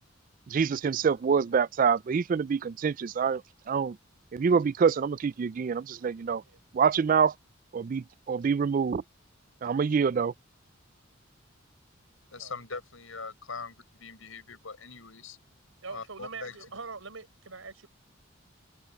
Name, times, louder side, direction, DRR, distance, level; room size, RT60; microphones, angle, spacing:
voice 1, 0.5-3.4 3.7-4.0 4.3-6.4 6.7-7.3 7.7-9.0 9.6-10.3, right 6 dB, 40° right, 0.3 m, -26 dB
voice 2, 12.3-15.4 15.9-16.6, left 4 dB, 80° left, 5.3 m, -41 dB
voice 3, 15.8-17.9, right 4 dB, 85° right, 4.6 m, -43 dB
head